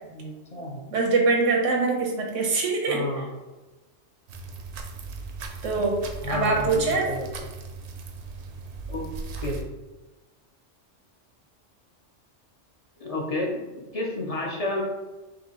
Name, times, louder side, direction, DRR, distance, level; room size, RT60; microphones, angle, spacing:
voice 1, 0.0-0.8 2.9-3.3 6.2-7.3 8.9-9.1 9.4-9.6 13.0-13.6 13.9-14.8, left 2 dB, 40° left, -1 dB, 0.6 m, -31 dB
voice 2, 0.9-3.0 5.6-6.0 6.3-7.1, right 3 dB, 85° right, 0 dB, 1.2 m, -23 dB
sound 1, 4.3-9.6, right 4 dB, 70° right, 0.8 m, -38 dB
5.0 x 2.9 x 2.9 m, 1.2 s
omnidirectional pair, 1.2 m